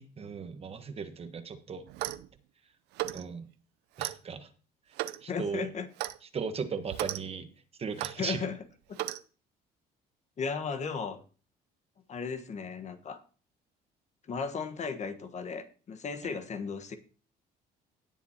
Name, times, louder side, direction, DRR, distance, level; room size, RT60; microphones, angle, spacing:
voice 1, 0.0-1.8 3.1-3.5 4.0-4.5 5.2-5.7 6.3-7.5 7.8-8.4 16.2-16.3, right 5 dB, 35° right, 9 dB, 1.2 m, -37 dB
Clock, 1.9-2.3 2.9-3.2 4.0-4.2 5.0-5.2 6.0-6.2 6.9-7.2 8.0-8.1 9.0-9.2, right 15 dB, 85° right, 0.6 m, -34 dB
voice 2, 5.3-5.9 8.2-8.6 10.4-11.2 12.1-13.2 14.3-17.0, left 5 dB, 45° left, 8 dB, 1.3 m, -35 dB
17.5 x 7.1 x 2.9 m, 0.38 s
cardioid pair, 110°, 17 cm